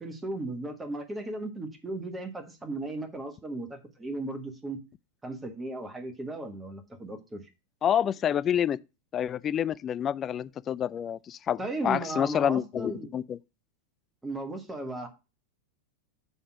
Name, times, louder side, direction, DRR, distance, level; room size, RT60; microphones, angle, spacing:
voice 1, 0.0-4.8 5.2-7.5 11.6-13.1 14.2-15.1, right 2 dB, 10° right, 1.4 m, -36 dB
voice 2, 7.8-8.8 9.1-13.4, left 9 dB, 25° left, 0.3 m, -28 dB
6.8 x 3.6 x 6.0 m
figure-of-eight pair, 90°, 0 cm